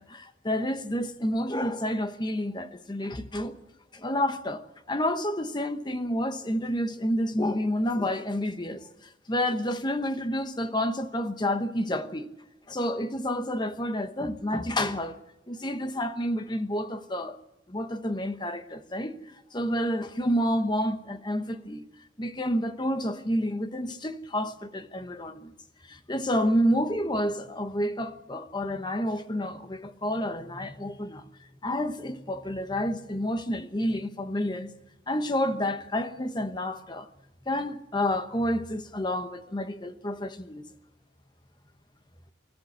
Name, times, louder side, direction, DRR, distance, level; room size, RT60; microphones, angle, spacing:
voice 1, 0.0-3.6 3.9-12.3 12.7-15.2 15.5-17.4 17.7-19.1 19.5-21.8 22.2-25.5 25.8-31.3 31.6-34.7 35.1-37.1 37.5-40.6, equal, 25° left, 1.1 m, -29 dB
24.5 x 13.5 x 8.0 m
head